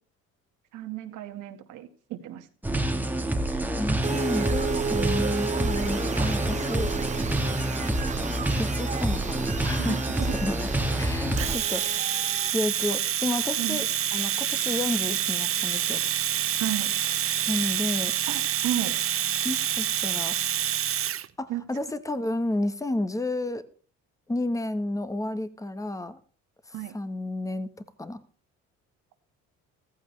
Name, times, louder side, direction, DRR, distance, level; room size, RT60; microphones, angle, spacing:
voice 1, 0.7-2.5 9.8-10.3 11.3-11.5 13.6-13.8 16.6-16.9 18.3-19.0 21.5-21.6 26.7-26.9, right 13 dB, 80° right, 6 dB, 1.9 m, -33 dB
sound 1, 2.6-11.6, right 1 dB, 5° right, 1.5 m, -27 dB
voice 2, 3.8-6.9 8.6-10.6 10.9-11.8 12.5-13.9 14.1-16.0 17.5-18.1 19.4-20.4 21.4-23.6 24.3-26.2 26.7-27.7 28.0-28.2, left 1 dB, 10° left, 12 dB, 1.3 m, -31 dB
sound 2, 4.0-12.5, right 5 dB, 25° right, 0.6 m, -34 dB
Domestic sounds home sounds, 11.4-21.3, right 10 dB, 50° right, 0.8 m, -27 dB
14.5 x 14.5 x 3.3 m, 0.42 s
cardioid pair, 95°, 30 cm